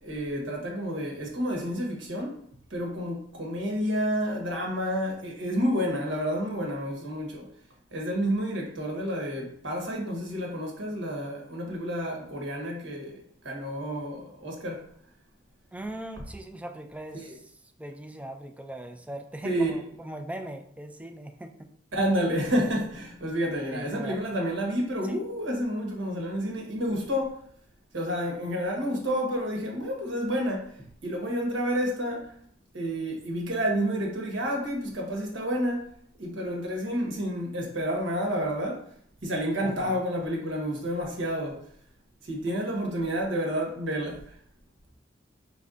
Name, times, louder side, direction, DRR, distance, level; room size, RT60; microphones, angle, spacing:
voice 1, 0.0-2.4 2.7-7.5 7.9-14.8 17.1-17.2 19.4-19.7 21.9-27.4 27.9-32.3 32.7-35.9 36.2-38.9 39.2-41.7 42.2-44.4, equal, 80° right, 1.2 m, -30 dB
voice 2, 15.7-21.7 23.7-24.2 25.0-25.2 39.6-40.1, right 1 dB, 5° right, 0.3 m, -40 dB
5.2 x 3.4 x 2.5 m
head